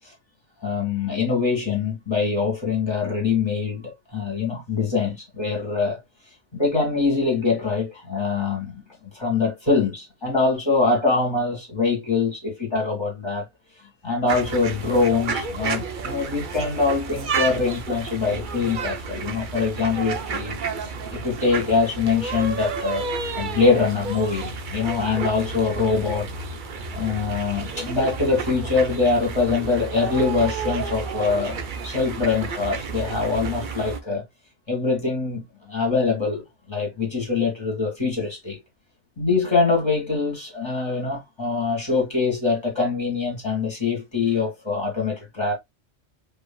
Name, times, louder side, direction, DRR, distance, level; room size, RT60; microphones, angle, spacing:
voice 1, 0.6-6.0 6.5-8.8 9.1-13.4 14.0-20.6 21.1-26.3 26.9-34.2 34.7-38.6 39.2-45.5, left 4 dB, 20° left, 2.1 m, -24 dB
sound 1, 14.3-34.0, right 4 dB, 50° right, 0.7 m, -31 dB
4.7 x 3.2 x 2.3 m
omnidirectional pair, 1.2 m